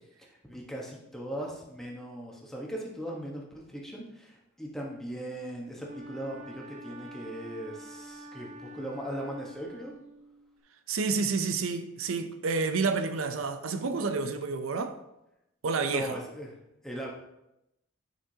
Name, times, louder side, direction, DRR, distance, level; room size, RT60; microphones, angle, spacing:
voice 1, 0.3-9.9 15.8-16.5 16.8-17.1, right 1 dB, ahead, 1.1 m, -39 dB
Wind instrument woodwind instrument, 5.8-10.5, right 1 dB, 35° right, 0.5 m, -47 dB
voice 2, 10.9-15.0 15.6-16.2, right 4 dB, 80° right, 0.5 m, -29 dB
9.1 x 5.8 x 2.8 m
head